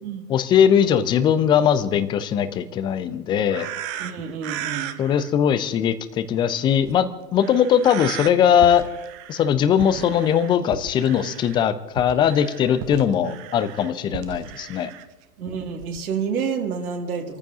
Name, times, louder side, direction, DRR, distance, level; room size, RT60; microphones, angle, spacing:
voice 1, 0.3-3.7 5.0-8.8 9.3-14.9, left 8 dB, 10° left, 13 dB, 0.4 m, -20 dB
sound 1, 3.5-5.3 6.8-7.0 7.4-8.3 8.6-9.5 9.8-11.6 12.0-15.1 15.8-16.0, right 10 dB, 30° right, 0.9 m, -35 dB
voice 2, 4.0-4.9 13.2-13.4 15.4-17.4, right 6 dB, 60° right, 2 dB, 2.4 m, -29 dB
29.0 x 14.5 x 2.8 m, 1.1 s
figure-of-eight pair, 100°, 47 cm